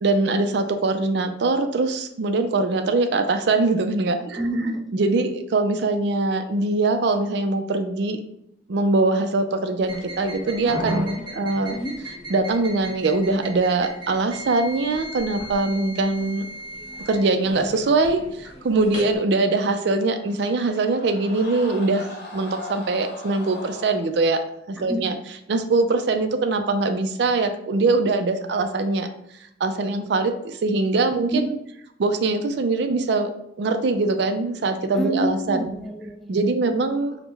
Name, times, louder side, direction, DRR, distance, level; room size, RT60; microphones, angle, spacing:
voice 1, 0.0-4.5 4.9-8.2 8.7-11.8 12.3-16.5 17.1-24.4 24.7-25.2 25.5-29.1 29.6-31.4 32.0-33.3 33.6-35.7 36.3-37.2, right 3 dB, 60° right, 7 dB, 0.4 m, -22 dB
voice 2, 4.4-4.9 10.9-11.0 11.3-11.4 11.7-11.9 24.8-25.0 31.3-31.4 34.9-36.7, right 1 dB, ahead, 1 dB, 0.4 m, -28 dB
sound 1, 9.8-19.2, right 1 dB, 25° right, 1.3 m, -36 dB
Screaming, 19.5-24.0, left 2 dB, 60° left, 0.8 m, -39 dB
4.9 x 2.1 x 3.3 m, 0.77 s
head